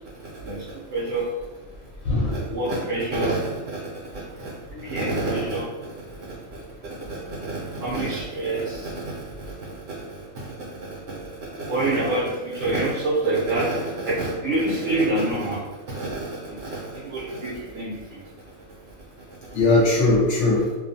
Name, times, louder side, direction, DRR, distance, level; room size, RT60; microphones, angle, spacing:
voice 1, 0.4-1.2 2.3-3.8 4.1-4.5 4.8-5.7 6.1-6.2 6.5-6.6 7.0-15.6 15.9-18.2 19.5-19.6, right 2 dB, 70° right, -6 dB, 0.9 m, -27 dB
voice 2, 2.0-2.5 4.7-5.4 19.5-20.7, left 2 dB, 70° left, -5 dB, 0.9 m, -21 dB
2.4 x 2.2 x 2.6 m, 1.2 s
omnidirectional pair, 1.4 m